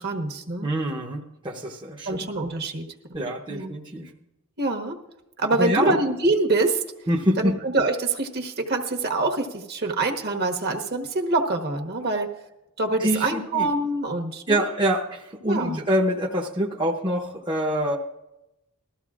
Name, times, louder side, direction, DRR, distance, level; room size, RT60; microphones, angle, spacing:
voice 1, 0.0-0.7 2.0-2.9 3.2-3.7 4.6-5.0 5.4-6.8 7.4-12.3 12.8-14.7 15.4-15.8, right 2 dB, 50° right, 4 dB, 1.3 m, -25 dB
voice 2, 0.6-2.3 3.1-4.1 5.6-6.0 7.1-7.6 13.0-13.7 14.5-18.0, right 1 dB, 20° right, -1 dB, 0.8 m, -25 dB
20.0 x 14.0 x 2.5 m, 0.94 s
head